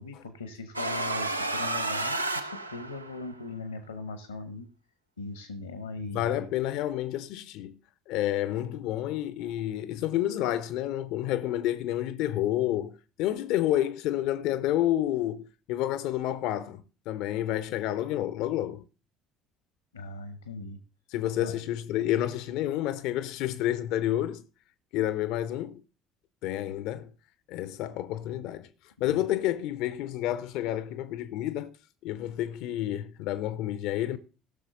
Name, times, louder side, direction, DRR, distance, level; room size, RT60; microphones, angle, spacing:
voice 1, 0.0-4.7 5.2-6.5 19.9-20.8 21.4-21.6 29.0-29.2, left 3 dB, 80° left, 0.8 m, -39 dB
sound 1, 0.7-3.3, right 2 dB, 85° right, 0.5 m, -31 dB
voice 2, 6.1-7.8 8.1-18.8 21.1-24.4 24.9-25.8 26.4-27.1 27.5-28.7 29.0-31.8 32.0-34.2, left 13 dB, 55° left, 0.5 m, -29 dB
17.5 x 6.3 x 3.8 m
figure-of-eight pair, 60°, 0 cm